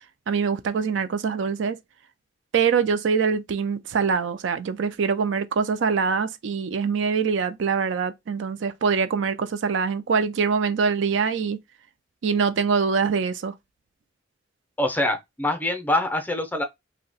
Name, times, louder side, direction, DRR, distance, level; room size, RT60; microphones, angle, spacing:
voice 1, 0.3-1.8 2.5-11.6 12.2-13.5, right 5 dB, 70° right, 0.4 m, -24 dB
voice 2, 14.8-16.6, left 1 dB, 10° left, 0.5 m, -24 dB
2.7 x 2.1 x 3.9 m
head